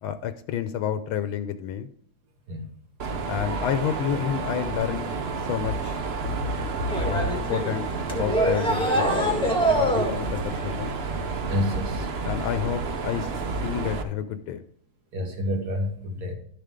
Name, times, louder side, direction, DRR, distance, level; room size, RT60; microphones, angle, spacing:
voice 1, 0.0-1.9 3.3-5.1 5.5-6.0 7.0-9.1 9.7-11.0 12.2-13.3 13.6-14.6, left 9 dB, 85° left, 10 dB, 1.4 m, -29 dB
Mechanisms, 3.0-14.0, right 4 dB, 75° right, 0.5 m, -30 dB
sound 1, 6.9-10.5, right 1 dB, 5° left, 1.3 m, -25 dB
voice 2, 11.5-12.1 15.1-16.3, left 1 dB, 50° right, 3 dB, 2.2 m, -28 dB
12.0 x 6.7 x 3.7 m, 0.63 s
omnidirectional pair, 2.2 m